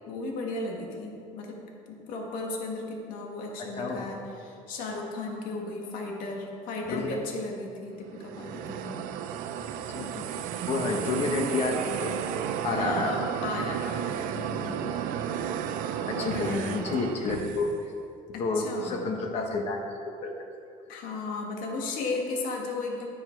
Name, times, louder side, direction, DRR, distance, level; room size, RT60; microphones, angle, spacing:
voice 1, 0.1-1.6 1.9-9.0 12.7-14.1 14.3-14.9 16.1-17.1 18.3-19.0 20.9-23.1, left 3 dB, 80° left, 0 dB, 1.8 m, -35 dB
sound 1, 8.1-17.8, right 9 dB, 80° right, 0.6 m, -33 dB
voice 2, 9.9-12.2 12.6-13.2 16.1-17.9 18.4-20.0 20.2-20.3, left 3 dB, 50° left, 2 dB, 1.1 m, -30 dB
11.5 x 9.7 x 4.6 m, 2.5 s
cardioid pair, 160°, 14 cm